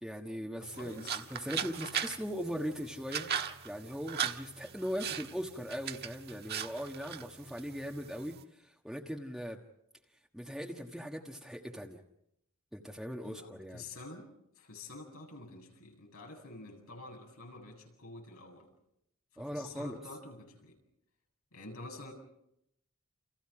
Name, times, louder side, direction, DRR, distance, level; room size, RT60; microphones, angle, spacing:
voice 1, 0.0-3.3 3.6-9.6 10.3-12.0 12.7-13.8 19.4-20.0, equal, ahead, 0 dB, 1.5 m, -40 dB
voice 2, 0.6-1.2 13.2-14.3 14.5-18.7 19.3-20.8 21.5-22.1, left 2 dB, 85° left, 2 dB, 7.9 m, -48 dB
sound 1, 0.6-8.4, right 8 dB, 50° right, 1.5 m, -39 dB
29.5 x 29.0 x 5.0 m, 0.80 s
head